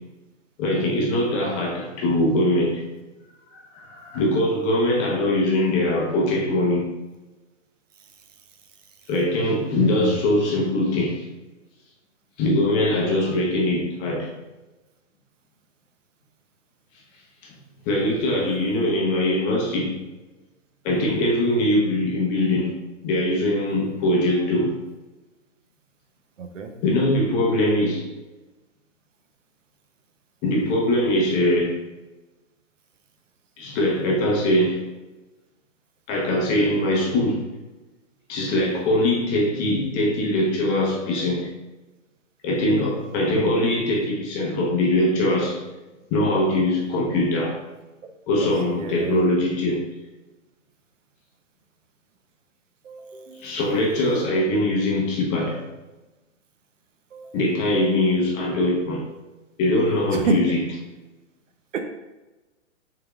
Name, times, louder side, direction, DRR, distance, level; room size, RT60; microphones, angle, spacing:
voice 1, 0.6-2.8 3.5-6.9 9.1-11.3 12.4-14.3 17.9-20.0 20.8-22.7 23.0-24.7 26.8-28.0 30.4-31.8 33.6-34.8 36.1-37.4 38.3-41.5 42.4-45.6 46.1-47.6 48.3-49.8 53.4-55.6 57.3-59.1 59.6-60.6, left 1 dB, 20° left, -2 dB, 0.7 m, -22 dB
voice 2, 9.9-10.2 18.3-18.8 26.4-26.7 48.4-49.2 52.8-53.6 57.1-57.4 60.1-60.4 61.7-61.8, right 4 dB, 75° right, 5 dB, 0.8 m, -30 dB
4.7 x 3.7 x 2.3 m, 1.1 s
hypercardioid pair, 140°, 38 cm